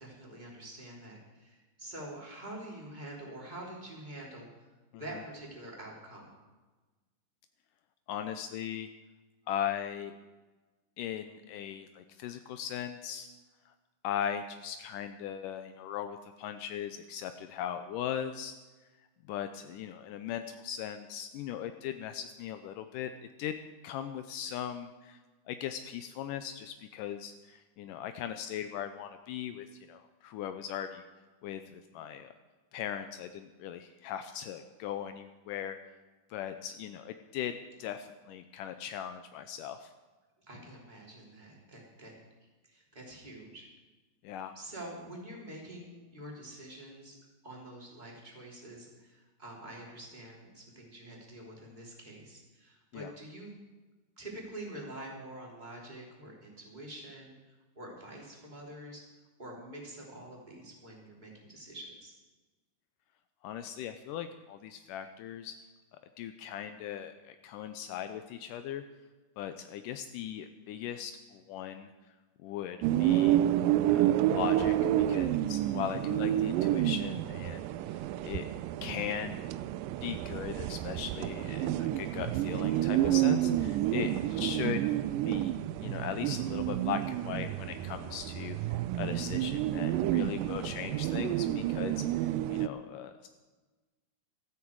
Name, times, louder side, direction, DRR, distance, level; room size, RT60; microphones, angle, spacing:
voice 1, 0.0-4.7 4.9-6.3 40.4-42.1 42.6-43.7 44.5-47.2 47.4-53.6 54.2-59.0 59.4-62.1 83.8-84.3, right 1 dB, 10° right, -2 dB, 2.9 m, -46 dB
voice 2, 8.1-8.9 9.5-10.1 11.0-13.3 13.7-13.8 14.0-18.6 19.3-23.1 23.4-23.6 23.8-25.2 25.5-31.0 31.4-32.3 32.7-35.8 36.3-39.9 44.2-44.5 52.9-53.1 63.4-65.5 66.2-68.8 69.4-71.9 72.4-73.4 73.9-78.5 78.8-79.4 80.0-84.8 85.3-93.3, left 9 dB, 85° left, 9 dB, 1.9 m, -39 dB
sound 1, 72.8-92.7, right 13 dB, 85° right, 2.0 m, -29 dB
16.0 x 13.5 x 4.7 m, 1.2 s
omnidirectional pair, 4.4 m